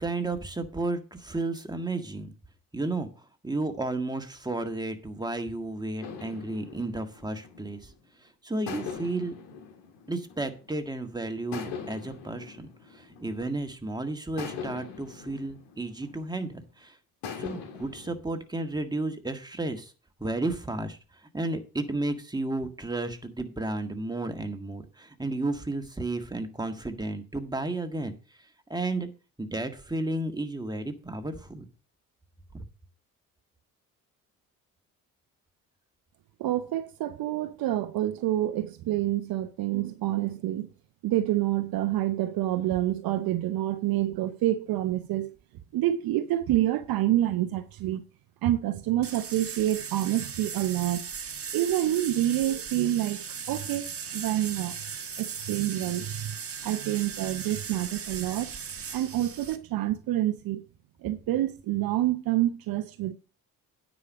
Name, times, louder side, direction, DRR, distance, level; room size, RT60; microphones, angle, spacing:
voice 1, 0.0-2.3 2.7-3.1 3.4-7.9 8.4-9.3 10.1-17.0 17.4-19.9 20.2-21.0 21.3-28.1 28.7-29.1 29.4-31.6 32.5-32.7, right 2 dB, 10° right, 1.7 m, -32 dB
sound 1, 6.0-8.1 8.7-10.9 11.5-13.8 14.4-16.5 17.2-18.2, left 6 dB, 70° left, 1.8 m, -41 dB
voice 2, 36.4-40.7 41.0-45.3 45.7-48.0 48.4-51.0 51.5-53.8 54.1-54.8 55.2-56.3 56.6-58.6 58.9-60.6 61.0-63.1, right 13 dB, 55° right, 0.8 m, -27 dB
sound 2, 49.0-59.6, right 6 dB, 30° right, 1.4 m, -38 dB
9.6 x 5.2 x 6.3 m
hypercardioid pair, 50°, 43 cm